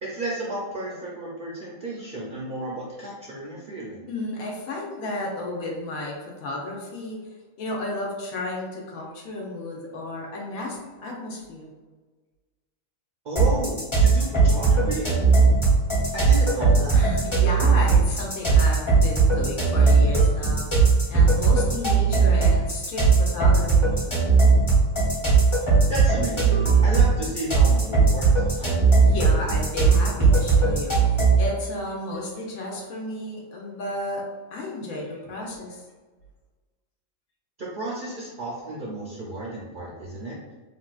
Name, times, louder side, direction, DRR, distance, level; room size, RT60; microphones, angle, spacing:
voice 1, 0.0-4.1 13.2-15.1 16.1-17.0 25.9-28.9 30.3-30.4 31.0-31.1 37.6-40.4, right 2 dB, 60° right, -5 dB, 0.5 m, -33 dB
voice 2, 4.1-7.2 7.6-11.7 16.9-24.0 29.0-30.9 31.4-34.2 34.5-35.8, left 2 dB, 80° left, -2 dB, 1.1 m, -33 dB
sound 1, 13.4-31.5, right 4 dB, 25° left, 0.8 m, -19 dB
3.6 x 2.4 x 2.3 m, 1.3 s
omnidirectional pair, 1.5 m